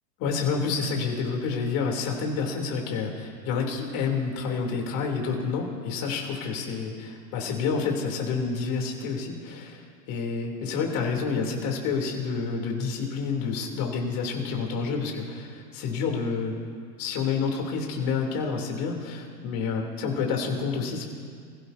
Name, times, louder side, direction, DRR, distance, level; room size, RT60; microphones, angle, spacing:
voice 1, 0.2-16.6 17.0-21.1, left 5 dB, 45° left, 1 dB, 3.2 m, -29 dB
26.5 x 16.0 x 2.8 m, 2.1 s
hypercardioid pair, 105°, 48 cm